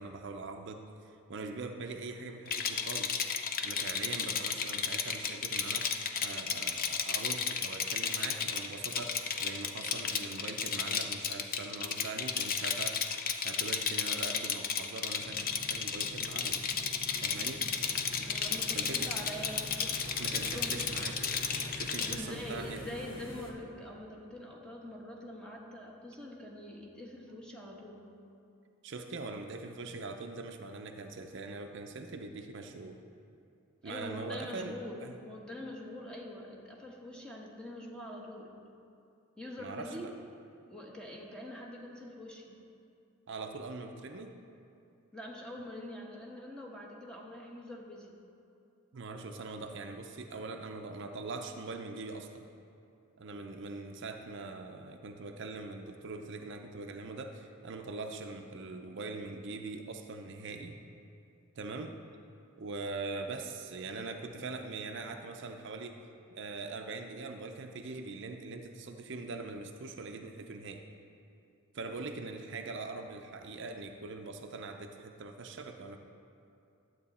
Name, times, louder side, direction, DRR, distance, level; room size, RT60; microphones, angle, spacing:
voice 1, 0.0-3.3 3.6-5.9 6.2-13.1 13.4-16.7 17.2-17.7 18.7-19.1 20.2-21.4 21.7-22.9 28.8-33.0 33.8-34.7 35.0-35.1 39.6-40.1 43.3-44.4 48.9-52.5 53.2-60.8 61.6-62.0 62.6-66.0 66.3-70.8 71.7-76.0, right 3 dB, 55° right, 4 dB, 0.6 m, -42 dB
Rattle, 2.5-22.2, left 7 dB, 45° left, 0.5 m, -33 dB
sound 1, 15.2-23.5, equal, 65° left, 1.3 m, -45 dB
voice 2, 18.2-20.0 20.4-20.7 22.0-28.1 33.8-38.6 39.4-40.1 40.7-42.6 45.1-48.2, left 1 dB, 5° left, -2 dB, 1.1 m, -44 dB
11.5 x 8.0 x 4.2 m, 2.7 s
head